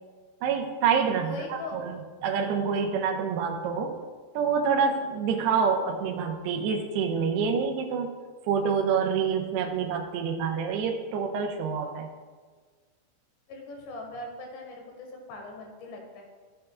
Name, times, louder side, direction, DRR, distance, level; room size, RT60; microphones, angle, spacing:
voice 1, 0.4-4.0 4.3-8.1 8.5-12.1, right 6 dB, 80° right, 3 dB, 2.6 m, -27 dB
voice 2, 1.2-1.8 5.4-5.8 13.5-16.2, left 2 dB, 75° left, 1 dB, 3.7 m, -41 dB
14.5 x 7.6 x 2.3 m, 1.5 s
omnidirectional pair, 5.1 m